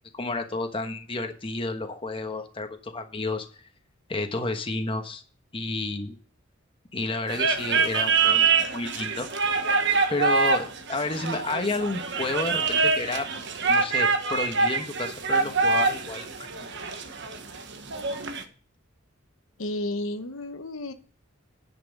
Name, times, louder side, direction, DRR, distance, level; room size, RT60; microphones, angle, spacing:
voice 1, 0.1-3.5 4.1-5.2 5.5-6.1 6.9-9.3 10.1-13.3 13.7-16.7, left 2 dB, 25° left, 6 dB, 1.2 m, -31 dB
sound 1, 7.3-18.4, right 4 dB, 60° right, 1.3 m, -25 dB
voice 2, 19.6-20.9, left 1 dB, 75° left, 8 dB, 1.0 m, -32 dB
10.5 x 6.0 x 7.2 m, 0.41 s
head